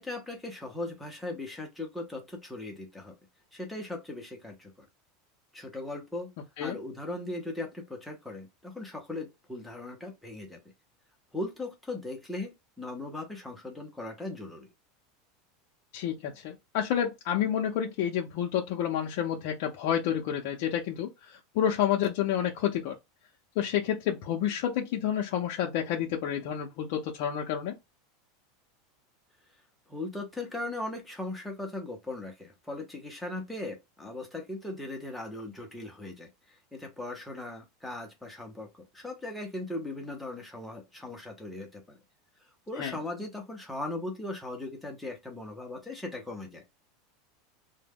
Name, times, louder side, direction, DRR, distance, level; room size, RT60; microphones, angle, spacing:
voice 1, 0.0-3.2 3.5-4.9 5.5-6.3 6.6-10.6 11.3-14.7 29.9-42.0 42.7-46.6, left 2 dB, 5° left, 0.6 m, -38 dB
voice 2, 15.9-23.0 23.6-27.7 42.8-42.9, left 9 dB, 50° left, 0.5 m, -29 dB
2.1 x 2.1 x 3.4 m
supercardioid pair, 170°, 0 cm